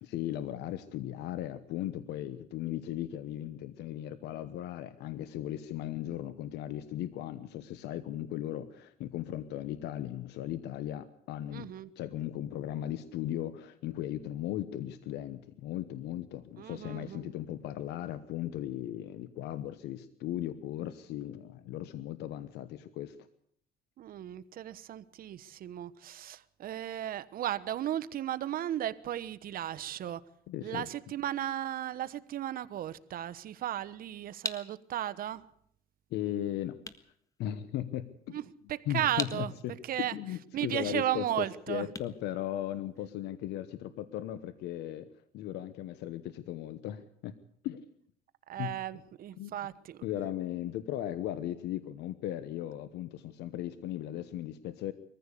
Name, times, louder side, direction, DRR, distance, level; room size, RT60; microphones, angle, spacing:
voice 1, 0.0-23.2 30.5-30.9 36.1-36.8 37.4-38.4 38.9-45.1 45.3-47.4 47.6-47.9 48.6-48.8 49.4-49.5 50.0-54.9, left 12 dB, 85° left, 1.1 m, -37 dB
voice 2, 11.5-11.9 16.6-17.3 24.0-30.2 30.6-35.4 38.3-38.4 38.7-39.5 39.8-40.1 40.5-41.9 48.5-50.0, right 12 dB, 60° right, 1.1 m, -35 dB
sound 1, 33.8-43.2, left 3 dB, 20° left, 1.6 m, -45 dB
22.0 x 15.0 x 8.4 m
cardioid pair, 110°, 17 cm